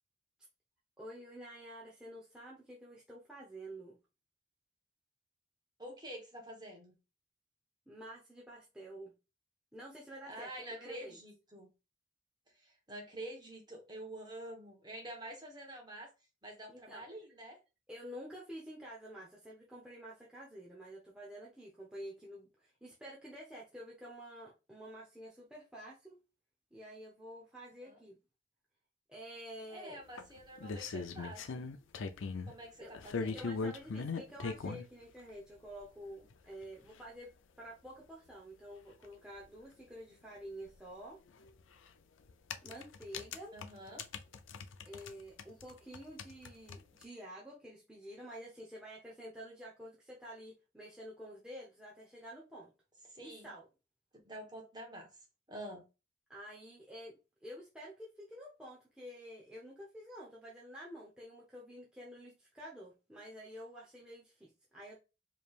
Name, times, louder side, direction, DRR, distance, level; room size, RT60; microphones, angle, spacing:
voice 1, 1.0-4.0 7.9-9.1 9.7-11.2 16.7-17.0 17.9-26.2 26.7-28.2 29.1-30.0 32.8-32.9 33.3-37.3 37.6-41.2 42.6-43.6 44.9-52.7 53.2-53.7 56.3-65.0, equal, 5° right, 0.8 m, -49 dB
voice 2, 5.8-7.0 10.3-11.7 12.5-16.1 16.4-17.6 27.8-28.0 29.7-31.6 32.4-33.5 43.5-44.0 53.1-53.5 54.2-55.2 55.5-55.8, right 1 dB, 20° right, 1.2 m, -48 dB
sound 1, 30.2-32.5 32.9-34.9 35.8-35.9 36.3-36.4 36.6-36.7 37.0-37.1 39.0-39.1 39.4-39.5 41.4-41.6 42.3-45.1 45.4-47.0, left 4 dB, 85° left, 0.5 m, -40 dB
5.1 x 3.2 x 2.4 m
head